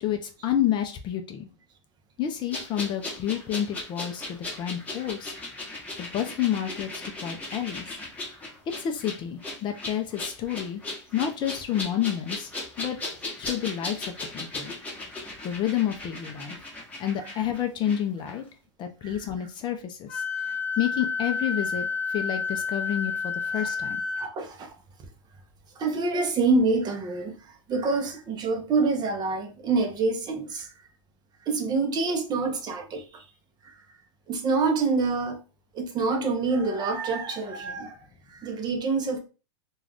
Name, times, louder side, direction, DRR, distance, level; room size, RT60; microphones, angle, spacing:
voice 1, 0.0-1.5 2.2-5.3 6.0-8.0 8.8-10.8 11.1-12.5 12.8-13.0 13.4-14.7 15.4-16.6 17.0-18.5 18.8-20.2 20.8-24.0, left 10 dB, 30° left, 0.4 m, -29 dB
sound 1, 2.5-18.0 18.3-18.4, left 2 dB, 10° left, 1.0 m, -37 dB
voice 2, 17.2-17.5 19.0-19.5 23.5-23.7 24.2-24.7 25.7-30.7 31.5-33.3 33.6-33.7 34.3-35.4 35.7-38.0 38.3-39.2, right 3 dB, 25° right, 0.6 m, -27 dB
Wind instrument woodwind instrument, 20.1-24.3, left 5 dB, 65° left, 0.9 m, -30 dB
2.4 x 2.3 x 3.4 m
hypercardioid pair, 115°, 15 cm